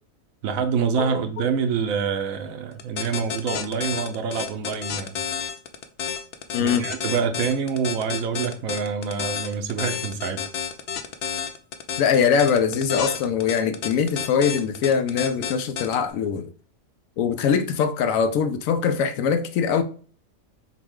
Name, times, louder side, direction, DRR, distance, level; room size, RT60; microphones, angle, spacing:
voice 1, 0.4-5.2 6.6-10.4, right 6 dB, 85° right, 1.1 m, -26 dB
sound 1, 2.8-15.9, left 7 dB, 65° left, 0.6 m, -30 dB
voice 2, 6.5-6.9 12.0-16.5 17.2-19.8, left 7 dB, 80° left, 1.0 m, -22 dB
6.0 x 2.2 x 3.6 m
omnidirectional pair, 1.4 m